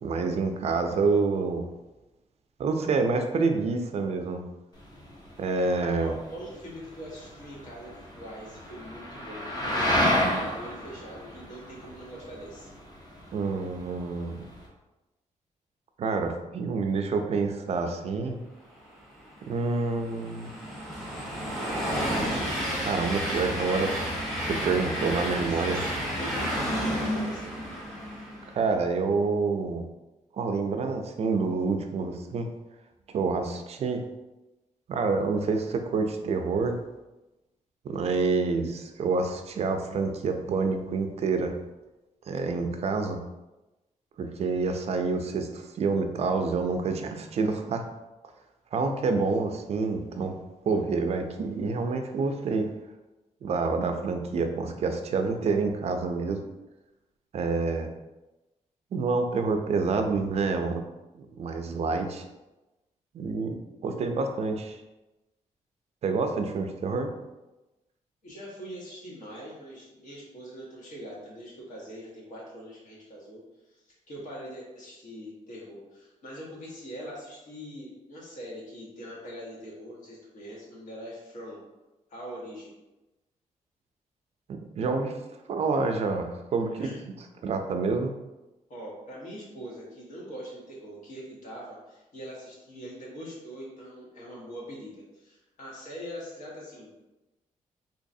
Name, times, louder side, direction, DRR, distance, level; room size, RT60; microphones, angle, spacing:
voice 1, 0.0-1.6 2.6-4.4 5.4-6.1 13.3-14.5 16.0-18.4 19.5-20.5 22.8-24.0 24.5-25.8 28.5-29.8 30.4-32.5 33.1-34.0 34.9-36.8 37.8-41.5 42.3-43.2 44.2-47.9 48.7-50.4 50.6-52.7 53.4-56.4 57.3-57.9 58.9-60.8 61.4-62.2 63.1-64.8 66.0-67.2 84.5-85.2 85.5-86.9 87.4-88.1, right 4 dB, 55° right, 5 dB, 0.4 m, -27 dB
sound 1, 4.7-14.7, left 1 dB, 30° left, 0.8 m, -32 dB
voice 2, 5.7-12.7 25.3-26.5 26.9-27.5 68.2-73.4 73.7-73.8 74.1-81.6 82.1-82.7 86.7-87.0 88.7-96.9, equal, 75° left, -4 dB, 1.3 m, -42 dB
Train, 19.2-28.7, equal, 5° left, 1.0 m, -31 dB
3.9 x 2.8 x 2.6 m, 1.0 s
wide cardioid pair, 140°, 13 cm